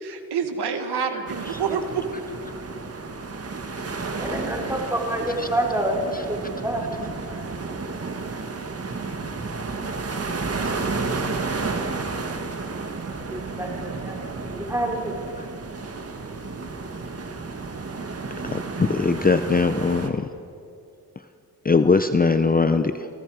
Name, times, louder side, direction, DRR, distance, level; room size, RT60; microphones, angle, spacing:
voice 1, 0.0-2.0, right 6 dB, 90° right, 7 dB, 1.9 m, -27 dB
sound 1, 1.3-20.1, right 3 dB, 35° right, 1.7 m, -32 dB
voice 2, 4.2-6.8 13.3-15.2, right 1 dB, 5° right, -1 dB, 3.8 m, -28 dB
voice 3, 18.4-20.3 21.6-23.1, left 4 dB, 25° left, 10 dB, 0.6 m, -21 dB
29.5 x 19.0 x 4.9 m, 2.5 s
wide cardioid pair, 125°, 39 cm